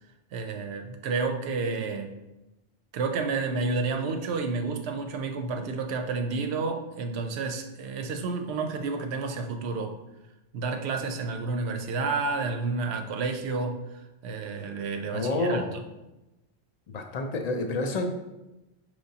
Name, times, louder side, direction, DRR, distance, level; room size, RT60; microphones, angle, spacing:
voice 1, 0.3-2.1 2.9-9.9 10.5-15.8, right 4 dB, 85° right, 5 dB, 0.8 m, -30 dB
voice 2, 15.1-15.7 16.9-18.0, left 2 dB, 55° left, 5 dB, 0.5 m, -28 dB
5.0 x 3.1 x 2.7 m, 0.99 s
omnidirectional pair, 1.1 m